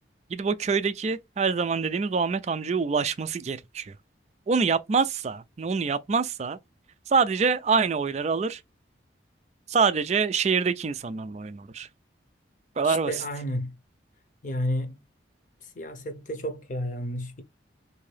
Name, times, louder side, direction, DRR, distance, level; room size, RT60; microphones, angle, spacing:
voice 1, 0.3-3.9 4.5-6.6 7.1-8.6 9.7-11.9 12.8-13.1, right 5 dB, 35° right, 0.3 m, -25 dB
voice 2, 12.8-13.8 14.4-15.0 15.6-17.4, left 1 dB, 40° left, 0.7 m, -31 dB
3.7 x 2.7 x 3.2 m
head